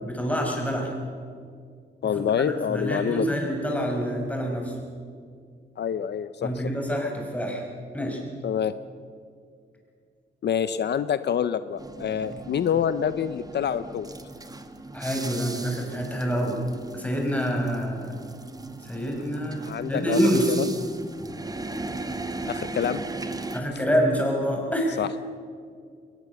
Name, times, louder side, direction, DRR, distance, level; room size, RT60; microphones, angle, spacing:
voice 1, 0.0-0.9 2.0-4.8 6.4-7.6 7.9-8.2 12.3-12.4 14.9-16.6 16.9-18.2 18.8-20.5 23.5-25.0, equal, 10° left, 0 dB, 5.7 m, -27 dB
voice 2, 2.0-3.3 5.8-6.6 8.4-8.7 10.4-14.1 19.6-20.6 22.5-23.0 25.0-25.2, left 8 dB, 65° left, 13 dB, 0.6 m, -27 dB
sound 1, 11.8-23.6, right 2 dB, 20° right, 1.4 m, -37 dB
21.5 x 20.0 x 6.9 m, 2.2 s
wide cardioid pair, 105°, 18 cm